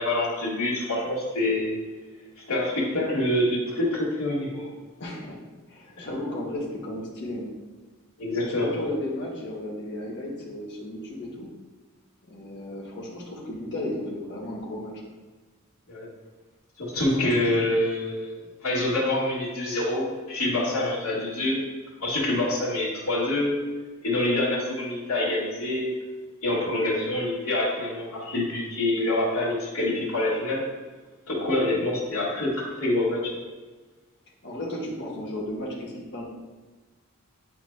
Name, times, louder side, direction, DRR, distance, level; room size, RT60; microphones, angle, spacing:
voice 1, 0.0-1.7 2.5-4.7 6.0-6.1 8.2-8.7 15.9-16.1 16.8-21.6 22.0-23.5 24.0-25.9 26.4-30.6 31.3-33.4, left 1 dB, 80° left, -9 dB, 2.0 m, -26 dB
voice 2, 5.0-5.4 5.7-7.5 8.3-11.5 12.3-14.9 34.4-36.2, left 1 dB, 55° left, -4 dB, 1.6 m, -34 dB
9.6 x 4.4 x 2.8 m, 1.3 s
head